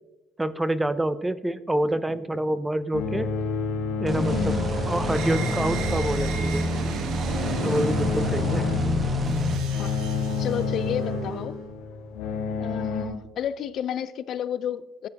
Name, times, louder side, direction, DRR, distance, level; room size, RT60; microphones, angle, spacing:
voice 1, 0.4-3.3 4.0-4.6 4.9-6.7 7.6-8.7, right 1 dB, 10° right, 15 dB, 0.5 m, -27 dB
sound 1, 2.9-13.1, left 4 dB, 85° left, 1.7 m, -31 dB
sound 2, 4.1-9.6, right 1 dB, 35° right, 1.3 m, -28 dB
voice 2, 4.3-4.7 7.6-7.9 9.7-10.0 10.4-11.6 12.6-15.1, left 9 dB, 55° left, 15 dB, 0.5 m, -32 dB
sound 3, 5.0-11.6, left 3 dB, 75° right, 1.5 m, -31 dB
14.0 x 9.6 x 2.9 m, 1.0 s
cardioid pair, 110°, 0 cm